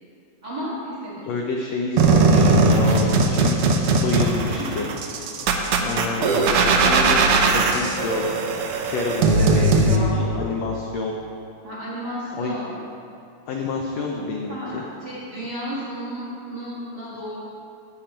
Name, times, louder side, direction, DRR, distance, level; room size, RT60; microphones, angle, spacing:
voice 1, 0.4-1.3 4.4-4.7 5.7-6.2 9.2-10.4 11.6-12.8 14.5-17.4, equal, 35° right, -8 dB, 2.2 m, -33 dB
voice 2, 1.3-3.6 4.0-4.9 5.8-8.3 8.8-11.1 12.3-12.6 13.5-14.8, left 4 dB, 75° left, 1 dB, 1.6 m, -28 dB
sound 1, 2.0-10.0, right 3 dB, 80° right, 1.3 m, -19 dB
12.0 x 9.1 x 4.4 m, 2.5 s
omnidirectional pair, 3.8 m